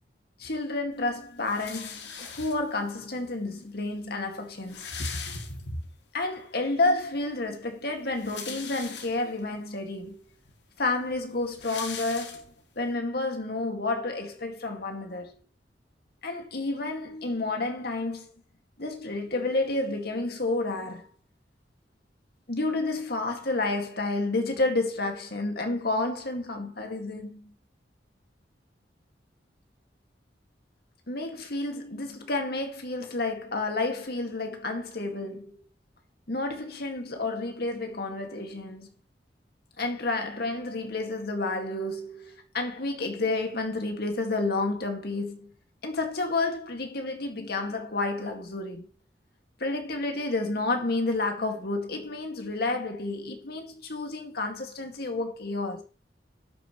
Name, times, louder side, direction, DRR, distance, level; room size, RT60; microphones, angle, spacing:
voice 1, 0.4-5.8 6.1-10.2 10.8-12.4 12.8-15.3 16.2-18.3 18.8-21.1 22.5-27.5 31.1-35.5 36.3-38.9 39.8-45.5 45.8-48.9 49.6-55.8, left 2 dB, 60° left, 2.1 m, -30 dB
sound 1, 1.4-2.9 3.7-3.8 4.0-4.1 4.4-6.0 6.4-6.5 7.9-9.5 10.1-10.2 10.5-12.8, left 6 dB, 90° left, 2.0 m, -41 dB
11.5 x 8.7 x 3.1 m
head